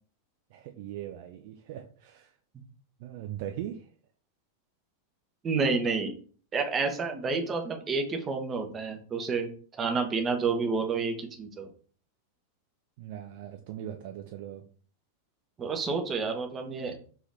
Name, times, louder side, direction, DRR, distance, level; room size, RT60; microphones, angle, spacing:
voice 1, 0.5-2.3 3.0-3.9 13.0-14.6, right 11 dB, 50° right, 5 dB, 0.4 m, -40 dB
voice 2, 5.4-6.1 6.5-9.5 9.8-11.7 15.6-17.0, right 4 dB, 25° right, 4 dB, 0.9 m, -29 dB
3.9 x 2.9 x 3.9 m, 0.43 s
figure-of-eight pair, 90°, 0 cm